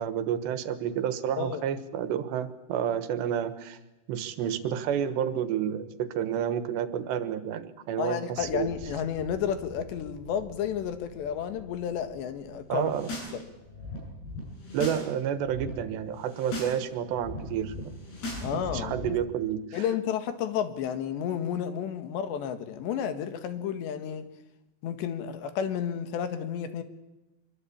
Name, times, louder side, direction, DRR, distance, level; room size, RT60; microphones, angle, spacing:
voice 1, 0.0-3.8 4.1-8.7 12.7-13.1 14.7-17.8 18.5-19.8, right 9 dB, 85° right, 12 dB, 3.6 m, -30 dB
voice 2, 1.4-1.7 8.0-12.9 13.3-13.4 18.4-19.2 19.7-24.3 24.8-26.8, left 8 dB, 85° left, 9 dB, 4.0 m, -31 dB
sound 1, 8.4-13.7, left 1 dB, 45° left, 6.0 m, -49 dB
sound 2, 12.8-13.3 13.6-15.0 15.3-15.7 16.2-16.8 17.0-19.1, left 2 dB, 70° left, 10.0 m, -38 dB
25.0 x 23.0 x 8.8 m, 1.0 s
omnidirectional pair, 4.9 m